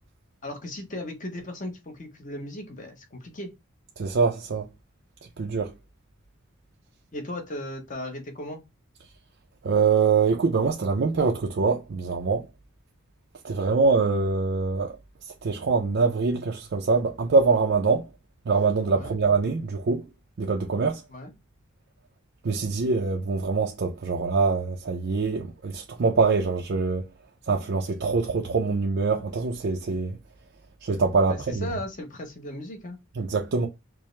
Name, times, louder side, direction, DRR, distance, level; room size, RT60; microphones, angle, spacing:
voice 1, 0.4-3.5 7.1-8.6 18.9-19.2 21.1-21.3 31.3-33.0, left 1 dB, 35° left, 0.8 m, -36 dB
voice 2, 4.0-4.7 5.4-5.7 9.6-12.4 13.4-14.9 15.4-18.1 18.5-20.0 20.4-21.0 22.4-27.0 27.5-30.2 30.8-31.7 33.2-33.7, right 4 dB, 55° right, 0.4 m, -24 dB
4.6 x 2.0 x 3.1 m
head